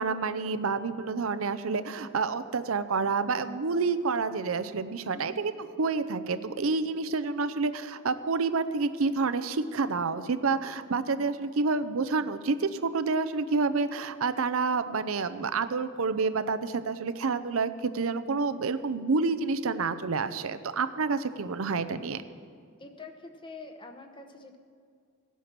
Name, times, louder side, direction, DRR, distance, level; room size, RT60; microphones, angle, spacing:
voice 1, 0.0-5.5 5.8-22.2, right 4 dB, 80° right, 12 dB, 0.6 m, -28 dB
voice 2, 5.1-5.4 22.8-24.6, left 3 dB, 25° left, 6 dB, 0.9 m, -45 dB
17.0 x 8.2 x 6.0 m, 2.3 s
head